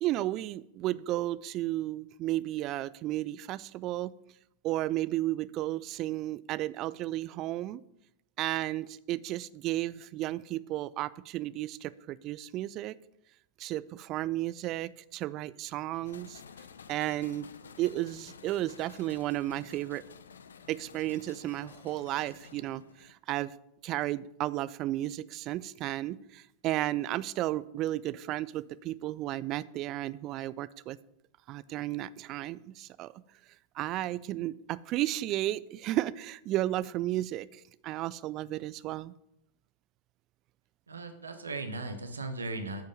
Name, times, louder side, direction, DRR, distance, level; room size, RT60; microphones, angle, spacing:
voice 1, 0.0-4.1 4.6-7.8 8.4-12.9 13.6-16.4 16.9-17.5 17.8-20.0 20.7-23.5 23.8-31.0 31.5-33.2 33.7-39.1, right 15 dB, 35° right, 18 dB, 0.3 m, -33 dB
sound 1, 16.0-23.1, left 6 dB, 70° left, 0.5 m, -52 dB
voice 2, 40.9-42.8, right 2 dB, 75° right, 8 dB, 0.9 m, -37 dB
9.1 x 5.2 x 5.3 m, 0.82 s
figure-of-eight pair, 90°, 0 cm